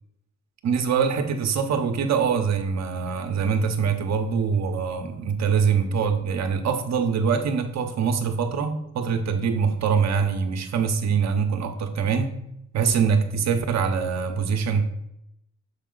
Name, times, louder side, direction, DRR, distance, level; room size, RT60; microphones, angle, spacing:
voice 1, 0.6-12.3 12.7-14.8, right 6 dB, 60° right, 6 dB, 0.9 m, -24 dB
7.0 x 4.2 x 3.9 m, 0.80 s
cardioid pair, 90°, 30 cm